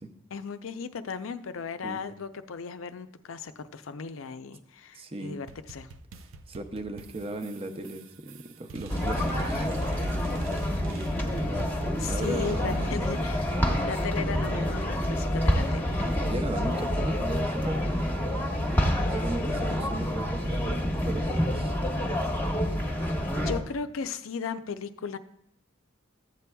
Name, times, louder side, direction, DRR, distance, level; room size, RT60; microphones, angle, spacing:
voice 1, 0.3-5.9 12.0-16.1 23.4-25.2, left 5 dB, 85° left, 10 dB, 0.5 m, -36 dB
voice 2, 4.9-5.4 6.5-9.7 12.0-12.9 13.6-13.9 16.3-18.1 19.1-21.7, right 2 dB, 30° right, 6 dB, 0.6 m, -36 dB
sound 1, 5.5-12.9, right 4 dB, 85° right, 0.5 m, -44 dB
sound 2, 8.9-23.6, equal, 10° left, 1.0 m, -28 dB
14.5 x 8.3 x 2.2 m, 0.73 s
head